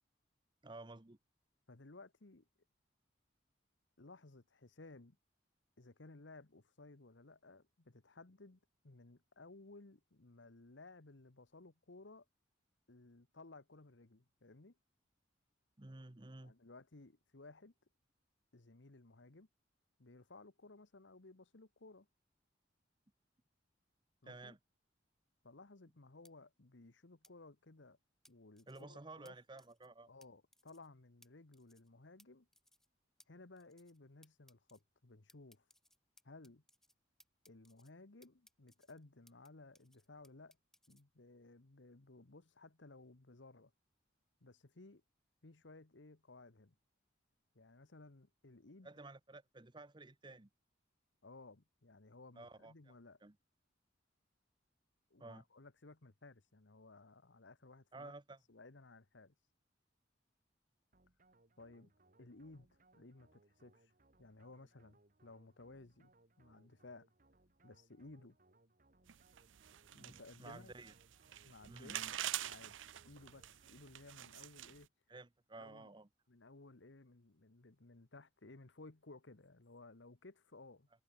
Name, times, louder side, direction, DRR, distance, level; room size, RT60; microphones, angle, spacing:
voice 1, 0.6-1.2 15.8-16.5 24.2-24.6 28.7-30.1 48.8-50.5 52.4-52.9 53.2-53.4 55.2-55.4 57.9-58.4 69.9-70.9 71.7-72.1 75.1-76.1, right 2 dB, 25° right, 0.9 m, -53 dB
voice 2, 1.7-2.5 4.0-5.2 5.8-12.2 12.9-14.8 16.4-17.7 18.5-19.5 20.0-22.1 24.2-24.5 25.4-28.0 28.3-29.3 30.1-32.5 33.3-35.6 36.2-36.6 37.5-40.6 40.9-43.7 44.4-45.0 45.4-46.7 47.5-48.9 51.2-53.2 55.1-58.1 58.5-59.3 61.6-61.9 62.2-63.9 64.2-67.1 67.6-68.4 69.9-70.7 71.4-72.0 72.5-72.8 73.0-74.9 75.6-75.9 76.3-80.9, left 2 dB, 70° left, 1.2 m, -58 dB
sound 1, 26.2-26.3 27.2-27.3 28.2-28.8 29.2-29.3 29.6-29.9 30.2-30.3 30.5-30.9 31.2-31.3 31.5-31.9 32.2-32.3 32.5-32.9 33.2-33.3 33.6-34.0 34.2-34.8 35.3-36.9 37.2-37.9 38.2-39.5 39.7-41.0, left 1 dB, ahead, 2.4 m, -68 dB
sound 2, 60.9-74.1, right 2 dB, 45° right, 2.3 m, -71 dB
sound 3, 69.1-74.9, right 13 dB, 75° right, 0.6 m, -46 dB
head